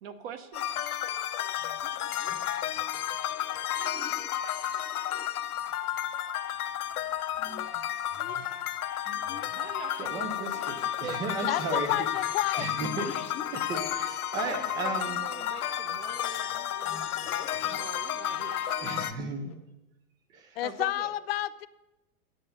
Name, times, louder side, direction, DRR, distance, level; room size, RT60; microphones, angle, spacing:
voice 1, 0.0-0.8 9.5-10.6 11.0-11.7 14.3-19.1 20.6-21.1, right 7 dB, 40° right, 1.2 m, -44 dB
sound 1, 0.5-19.1, left 11 dB, 75° left, 1.0 m, -32 dB
sound 2, 1.5-6.2 6.5-14.1 14.4-19.6, left 6 dB, 15° left, 0.8 m, -49 dB
voice 2, 10.0-13.1 13.5-15.2 18.8-19.5 20.3-20.6, right 3 dB, 10° right, 0.4 m, -35 dB
voice 3, 11.5-12.7 20.6-21.7, left 14 dB, 45° left, 0.6 m, -30 dB
10.0 x 7.9 x 9.4 m
supercardioid pair, 160°, 44 cm